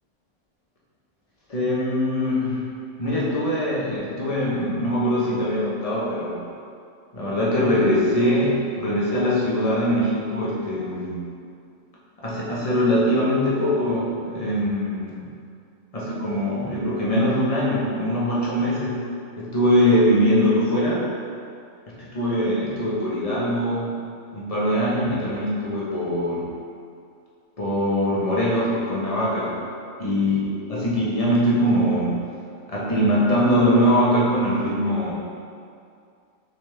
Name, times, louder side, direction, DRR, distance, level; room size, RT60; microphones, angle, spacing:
voice 1, 1.5-2.7 3.0-6.4 7.1-11.2 12.2-15.3 15.9-19.1 19.4-21.1 21.9-24.0 24.3-26.5 27.6-29.5 30.0-32.2 32.7-35.1, equal, 30° left, -7 dB, 1.2 m, -22 dB
6.5 x 4.2 x 3.4 m, 2.4 s
omnidirectional pair, 1.4 m